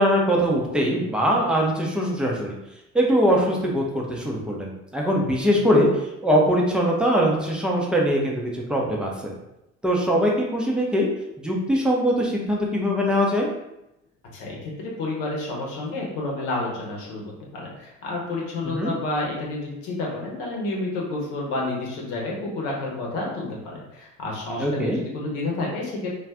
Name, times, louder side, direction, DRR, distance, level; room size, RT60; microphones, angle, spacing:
voice 1, 0.0-2.5 2.9-5.9 6.2-9.3 9.8-11.1 11.4-13.5 18.7-18.9 24.6-25.0, equal, ahead, -2 dB, 0.6 m, -22 dB
voice 2, 14.3-26.1, left 2 dB, 60° left, -2 dB, 1.0 m, -30 dB
2.4 x 2.4 x 3.4 m, 0.88 s
figure-of-eight pair, 60°, 39 cm